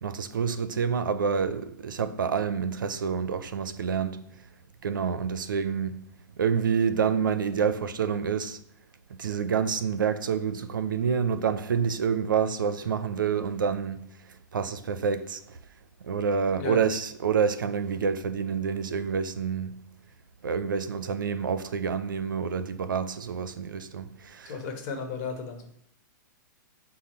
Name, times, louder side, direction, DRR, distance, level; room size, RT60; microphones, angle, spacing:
voice 1, 0.0-4.2 4.8-6.0 6.4-8.6 9.1-14.0 14.5-15.6 16.0-19.7 20.4-24.5, right 6 dB, 90° right, 0.4 m, -28 dB
voice 2, 24.4-25.7, left 5 dB, 45° left, 1.0 m, -34 dB
5.8 x 2.0 x 4.2 m
hypercardioid pair, 125°, 10 cm